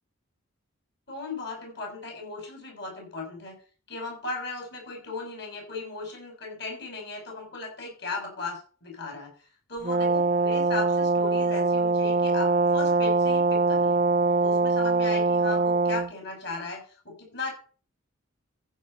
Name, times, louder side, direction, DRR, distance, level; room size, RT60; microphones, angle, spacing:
voice 1, 1.1-3.6 3.9-9.3 9.7-14.0 14.4-17.5, left 3 dB, 50° left, 1 dB, 6.5 m, -37 dB
Brass instrument, 9.8-16.1, right 3 dB, 35° right, 0.5 m, -23 dB
15.0 x 5.8 x 5.5 m, 0.38 s
head